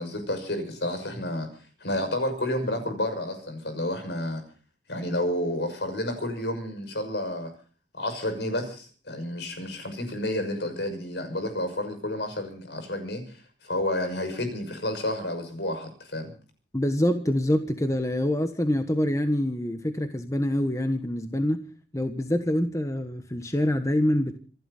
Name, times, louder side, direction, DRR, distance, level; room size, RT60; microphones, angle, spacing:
voice 1, 0.0-1.5 1.8-4.4 4.9-7.5 7.9-13.4 13.6-16.3, left 1 dB, 75° left, 6.2 m, -30 dB
voice 2, 16.7-21.7 21.9-24.4, left 1 dB, 20° left, 1.3 m, -25 dB
27.0 x 12.0 x 4.2 m
head